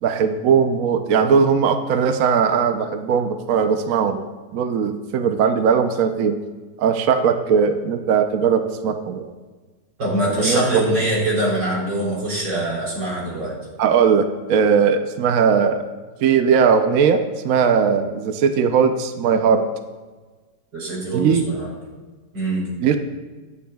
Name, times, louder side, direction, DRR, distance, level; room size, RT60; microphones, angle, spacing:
voice 1, 0.0-4.2 4.5-6.4 6.8-9.3 10.4-10.6 13.8-15.8 16.2-19.6 21.1-21.4 22.8-23.0, right 6 dB, 65° right, 7 dB, 1.0 m, -19 dB
voice 2, 10.0-13.5 20.7-21.7 22.3-22.6, right 1 dB, 90° right, -4 dB, 4.3 m, -23 dB
23.0 x 8.4 x 2.3 m, 1.3 s
omnidirectional pair, 1.8 m